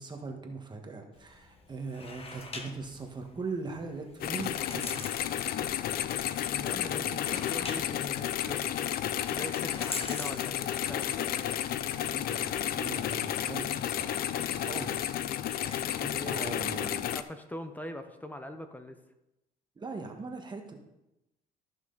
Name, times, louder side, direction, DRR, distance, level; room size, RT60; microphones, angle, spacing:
voice 1, 0.0-5.0 7.0-7.2 12.0-14.3 14.5-15.2 15.5-17.1 19.7-20.7, right 4 dB, 25° right, 3 dB, 1.5 m, -41 dB
sound 1, 1.1-16.1, left 3 dB, 35° left, 1.3 m, -46 dB
sound 2, 4.2-17.2, left 11 dB, 60° left, 0.5 m, -32 dB
voice 2, 6.6-11.6 16.1-19.0, left 1 dB, 10° left, 7 dB, 0.9 m, -43 dB
13.5 x 6.1 x 4.0 m, 0.92 s
cardioid pair, 110°, 17 cm